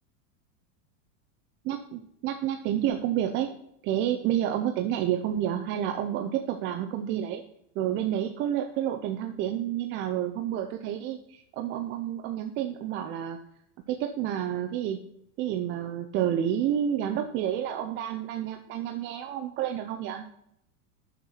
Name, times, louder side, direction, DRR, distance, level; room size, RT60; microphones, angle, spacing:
voice 1, 1.6-3.5 3.8-7.4 7.8-13.4 13.9-15.0 15.4-20.2, right 10 dB, 30° right, 6 dB, 0.5 m, -29 dB
6.7 x 6.3 x 5.6 m, 0.73 s
supercardioid pair, 155°, 39 cm